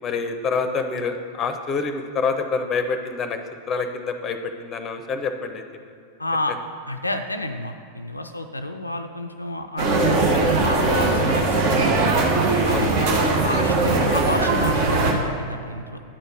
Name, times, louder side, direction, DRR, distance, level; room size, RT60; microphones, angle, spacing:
voice 1, 0.0-3.4 3.7-5.6 12.7-13.1, left 4 dB, 25° left, 7 dB, 0.7 m, -27 dB
voice 2, 6.2-6.6 6.9-11.9 12.6-16.0, left 1 dB, 85° left, 6 dB, 0.4 m, -29 dB
sound 1, 9.8-15.1, right 3 dB, 45° right, 1.0 m, -20 dB
8.9 x 4.4 x 6.4 m, 2.5 s
figure-of-eight pair, 90°, 0 cm